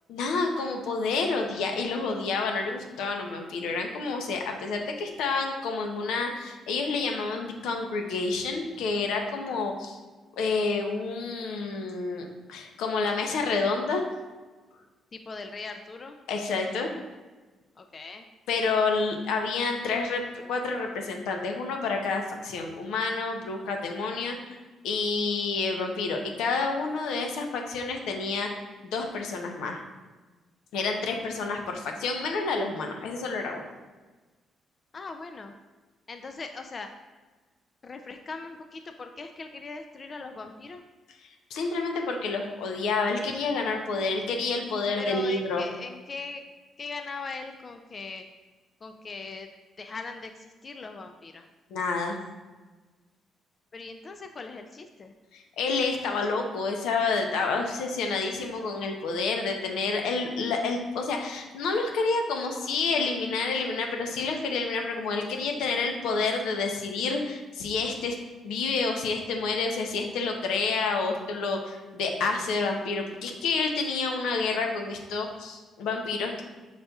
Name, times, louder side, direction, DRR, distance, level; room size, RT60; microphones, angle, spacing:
voice 1, 0.1-10.0 10.4-14.1 16.3-16.9 18.5-20.2 20.5-24.6 24.8-29.8 30.7-33.7 41.5-45.7 51.7-52.2 55.3-68.2 68.4-76.4, left 4 dB, 85° left, 3 dB, 0.6 m, -29 dB
voice 2, 15.1-16.2 17.8-18.3 34.9-35.5 36.1-36.9 37.8-40.8 45.0-46.4 46.8-48.2 48.8-49.5 49.8-51.5 53.7-55.1, left 4 dB, 40° left, 6 dB, 0.3 m, -40 dB
5.3 x 4.1 x 2.3 m, 1.3 s
cardioid pair, 90°, 0 cm